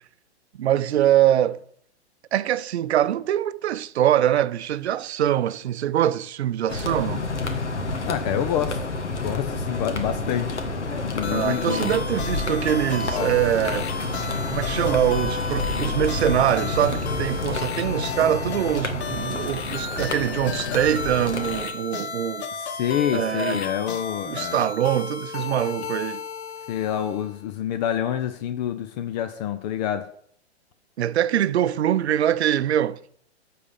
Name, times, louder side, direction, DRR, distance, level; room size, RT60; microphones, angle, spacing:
voice 1, 0.5-1.6 2.3-7.2 11.3-13.9 14.5-22.5 23.1-23.6 24.3-26.2 31.0-33.0, right 11 dB, 70° right, 0.6 m, -23 dB
sound 1, 6.7-21.7, left 3 dB, 90° left, 1.6 m, -29 dB
voice 2, 8.0-10.6 11.0-12.0 13.1-13.3 22.5-24.6 26.7-30.1, left 10 dB, 40° left, 0.7 m, -27 dB
sound 2, 11.2-27.4, left 5 dB, 70° left, 1.3 m, -33 dB
9.5 x 4.3 x 7.0 m
hypercardioid pair, 120°, 34 cm